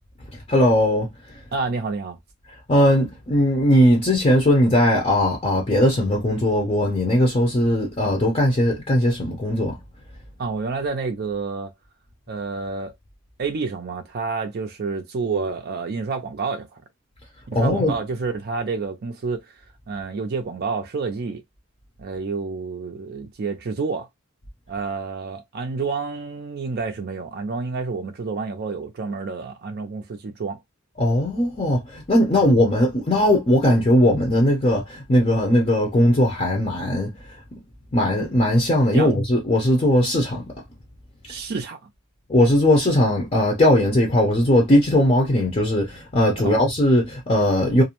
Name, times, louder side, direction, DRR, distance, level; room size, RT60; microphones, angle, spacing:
voice 1, 0.5-1.1 2.7-9.7 17.5-17.9 31.0-37.1 37.9-40.5 42.3-47.8, left 1 dB, 30° left, 0.6 m, -19 dB
voice 2, 1.5-2.2 10.4-11.7 12.3-12.9 13.4-16.8 17.5-19.6 19.9-21.4 22.0-24.1 24.7-30.6 38.9-39.1 41.3-41.8 46.4-46.5, right 4 dB, 50° right, 0.4 m, -29 dB
2.5 x 2.0 x 2.8 m
head